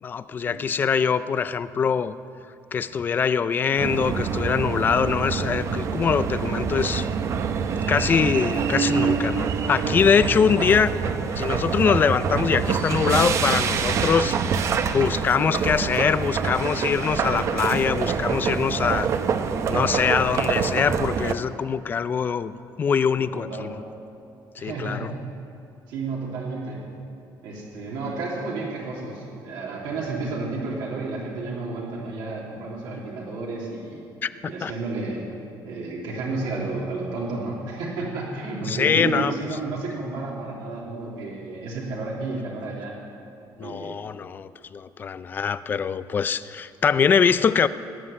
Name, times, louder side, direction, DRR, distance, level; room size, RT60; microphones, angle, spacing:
voice 1, 0.0-2.2 2.7-7.1 7.9-10.9 11.4-14.4 14.9-19.1 19.7-22.5 22.8-23.7 24.6-25.1 34.2-34.3 34.6-34.7 38.7-39.3 43.6-47.7, left 6 dB, 25° left, 14 dB, 0.4 m, -23 dB
sound 1, 3.8-21.3, right 6 dB, 40° right, 0.7 m, -26 dB
voice 2, 23.2-23.7 24.6-25.1 25.9-26.8 27.4-34.0 34.4-35.2 35.6-43.0 43.6-43.9, right 3 dB, 75° right, -3 dB, 3.0 m, -31 dB
19.0 x 7.6 x 9.8 m, 2.5 s
cardioid pair, 175°, 8 cm